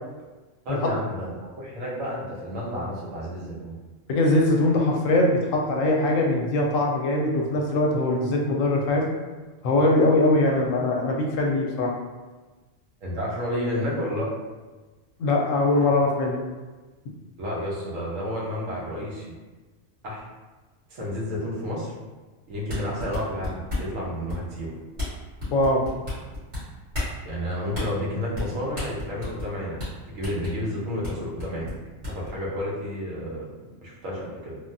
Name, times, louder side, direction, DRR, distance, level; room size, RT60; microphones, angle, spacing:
voice 1, 0.6-3.7 13.0-14.3 17.4-19.3 20.0-20.2 20.9-21.9 22.5-24.7 27.2-29.8 30.1-31.7 32.1-33.5 33.8-34.6, equal, 85° right, -5 dB, 1.2 m, -31 dB
voice 2, 4.1-9.1 9.6-11.9 15.2-16.4 25.5-25.8, left 2 dB, 85° left, 0 dB, 1.0 m, -22 dB
sound 1, 22.5-23.9 24.3-24.6 25.0-25.1 25.4-26.6 26.9-27.1 27.7-27.9 28.3-28.5 28.8-29.5 29.8-29.9 30.2-30.5 31.0-31.1 31.4-32.3, left 2 dB, 55° right, 1.8 m, -31 dB
3.4 x 2.1 x 2.6 m, 1.2 s
omnidirectional pair, 1.3 m